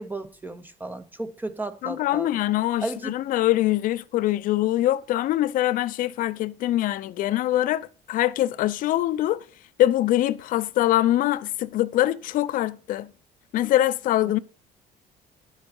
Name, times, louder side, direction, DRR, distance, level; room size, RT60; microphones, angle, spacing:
voice 1, 0.0-2.3 2.8-3.1, right 2 dB, 10° right, 0.7 m, -34 dB
voice 2, 1.8-9.4 9.8-13.1 13.5-14.4, left 14 dB, 65° left, 0.6 m, -23 dB
11.0 x 7.2 x 5.4 m
cardioid pair, 135°, 15 cm